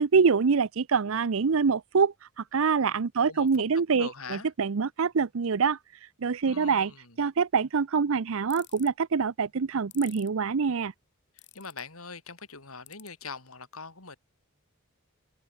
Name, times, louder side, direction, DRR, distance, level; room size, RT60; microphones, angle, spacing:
voice 1, 0.0-5.8 6.2-6.9 7.2-10.9, right 5 dB, 65° right, 0.6 m, -25 dB
voice 2, 3.9-4.5 6.4-7.2 11.3-14.2, left 4 dB, 75° left, 6.7 m, -42 dB
sound 1, 8.5-8.9 9.9-10.3 11.4-11.8 12.9-13.1, left 15 dB, 55° left, 7.6 m, -47 dB
head